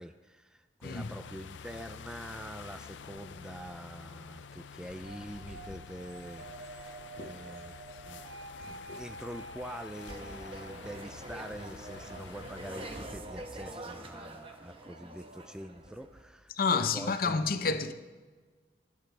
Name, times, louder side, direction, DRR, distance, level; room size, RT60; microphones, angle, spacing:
voice 1, 0.0-7.8 8.1-8.2 8.6-17.5, equal, 5° right, 0.4 m, -45 dB
sound 1, 0.8-13.0, left 6 dB, 85° left, 0.5 m, -49 dB
sound 2, 5.0-12.5, right 3 dB, 85° right, 1.4 m, -49 dB
voice 2, 8.6-9.0 16.5-17.9, left 4 dB, 50° left, 0.7 m, -30 dB
sound 3, 10.1-16.2, right 2 dB, 30° right, 1.0 m, -45 dB
21.5 x 8.4 x 3.3 m
head